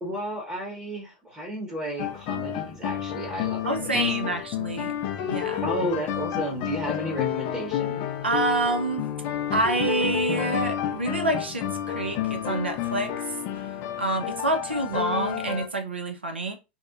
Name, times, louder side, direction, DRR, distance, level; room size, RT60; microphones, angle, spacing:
voice 1, 0.0-4.1 5.6-8.1, right 1 dB, 15° right, 0.9 m, -33 dB
sound 1, 2.0-15.7, left 10 dB, 45° left, 0.4 m, -30 dB
voice 2, 3.6-4.9 5.3-5.7 8.2-9.0 9.5-13.1 14.0-16.5, right 2 dB, 90° right, 0.5 m, -27 dB
2.8 x 2.1 x 2.3 m
hypercardioid pair, 95°, 6 cm